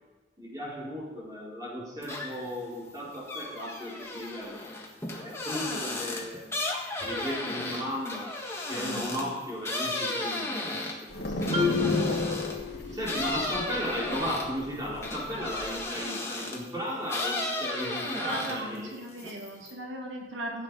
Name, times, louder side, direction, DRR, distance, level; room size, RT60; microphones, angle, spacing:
voice 1, 0.4-4.6 5.2-6.5 7.0-8.3 8.7-10.8 11.2-11.7 12.9-18.9, equal, 20° right, -5 dB, 4.3 m, -35 dB
sound 1, 2.0-2.6 2.9-12.6 13.0-16.7 17.1-18.8 19.1-19.7, left 2 dB, 15° left, 1.7 m, -34 dB
voice 2, 8.8-9.3 11.5-12.0 12.9-13.0 18.1-20.6, right 1 dB, 85° right, 0 dB, 2.4 m, -38 dB
sound 2, 11.1-15.8, left 1 dB, 60° left, 2.6 m, -33 dB
Marimba xylophone, 11.5-13.3, left 7 dB, 40° right, 2.0 m, -31 dB
15.0 x 9.0 x 5.4 m, 1.2 s
head